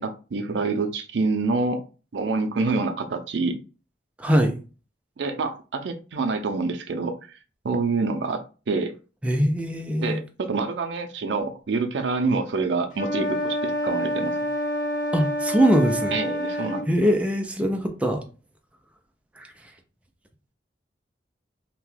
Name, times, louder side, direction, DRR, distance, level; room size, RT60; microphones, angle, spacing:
voice 1, 0.0-1.8 2.1-3.6 5.2-7.4 7.6-8.9 10.0-14.5 16.1-16.9, right 3 dB, 85° right, 0.5 m, -27 dB
voice 2, 4.2-4.6 9.2-10.2 15.1-16.2 16.9-18.2 19.4-19.5, equal, 5° right, 0.4 m, -22 dB
sound 1, 12.9-16.9, equal, 50° left, 0.7 m, -27 dB
2.8 x 2.2 x 3.2 m
head